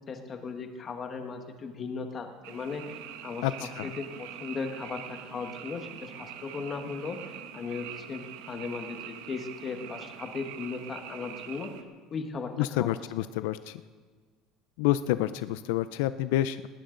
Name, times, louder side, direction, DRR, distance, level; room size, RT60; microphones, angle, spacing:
voice 1, 0.1-3.5 3.8-7.2 7.5-11.7 12.1-12.5 12.8-12.9, left 5 dB, 20° left, 5 dB, 1.3 m, -37 dB
Frog, 2.4-11.8, right 10 dB, 75° right, 1.1 m, -44 dB
voice 2, 3.4-3.9 12.6-13.8 14.8-16.7, left 14 dB, 85° left, 13 dB, 0.5 m, -28 dB
19.0 x 18.5 x 3.9 m, 1.5 s
cardioid pair, 180°, 0 cm